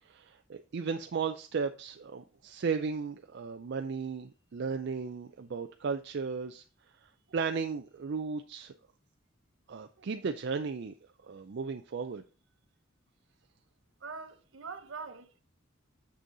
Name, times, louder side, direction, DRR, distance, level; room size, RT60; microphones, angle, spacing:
voice 1, 0.0-6.6 7.3-8.7 9.7-10.9 11.2-12.2, right 5 dB, 60° right, 0.4 m, -35 dB
voice 2, 14.0-15.4, right 4 dB, 75° right, 0.9 m, -43 dB
6.9 x 6.3 x 3.9 m
head